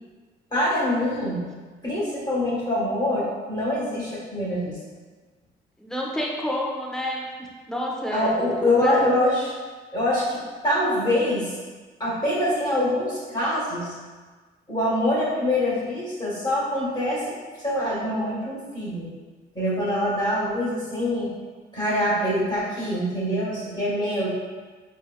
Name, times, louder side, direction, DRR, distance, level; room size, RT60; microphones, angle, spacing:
voice 1, 0.5-1.5 1.8-4.8 8.1-9.5 9.9-11.5 12.0-13.9 14.7-19.1 19.5-21.3 21.7-24.3, left 1 dB, 20° left, -7 dB, 1.4 m, -24 dB
voice 2, 5.8-8.3 8.7-8.9, equal, 5° left, -3 dB, 0.7 m, -29 dB
4.5 x 2.8 x 2.3 m, 1.4 s
cardioid pair, 90°, 20 cm